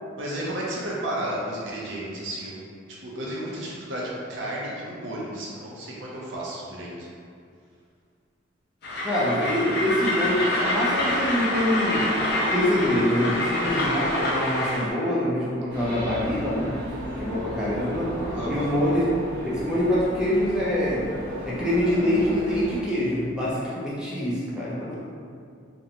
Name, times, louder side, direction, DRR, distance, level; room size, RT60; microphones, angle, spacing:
voice 1, 0.2-2.6 3.0-7.1 18.3-18.7, right 1 dB, 75° right, -5 dB, 0.5 m, -32 dB
Train, 8.8-14.9, left 1 dB, 55° left, 0.5 m, -26 dB
voice 2, 9.0-12.1 12.4-16.7 17.2-18.1 18.5-19.0 19.4-21.1 21.4-25.0, left 1 dB, 5° right, -8 dB, 0.4 m, -25 dB
sound 1, 15.7-22.8, equal, 55° right, 0.9 m, -35 dB
2.4 x 2.1 x 2.8 m, 2.3 s
head